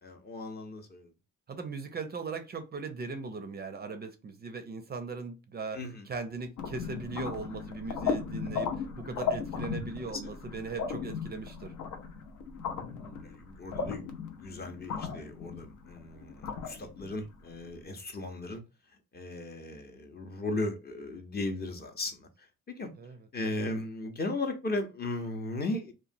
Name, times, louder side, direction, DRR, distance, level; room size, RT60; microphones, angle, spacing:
voice 1, 0.0-1.1 5.7-6.1 10.0-10.2 12.8-18.6 19.1-22.5 22.8-22.9 23.3-25.9, left 2 dB, 30° left, 0.6 m, -37 dB
voice 2, 1.5-5.8 6.1-11.7 23.0-23.2, right 4 dB, 35° right, 0.4 m, -39 dB
sound 1, 6.6-17.7, left 5 dB, 75° left, 0.6 m, -36 dB
2.9 x 2.2 x 2.5 m
cardioid pair, 90°, 30 cm